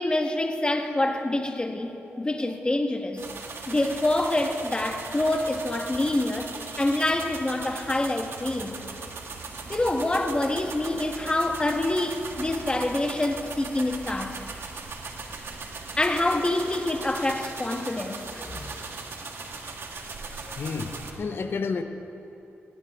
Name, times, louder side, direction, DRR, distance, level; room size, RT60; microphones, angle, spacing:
voice 1, 0.0-3.3 3.7-8.8 9.7-14.4 16.0-18.8 19.8-19.9 20.5-20.6, left 2 dB, 20° left, 1.5 m, -26 dB
sound 1, 3.2-21.1, right 4 dB, 60° right, 1.8 m, -39 dB
voice 2, 20.5-21.8, left 4 dB, 55° left, 1.1 m, -30 dB
19.0 x 17.5 x 3.7 m
cardioid pair, 65°, 5 cm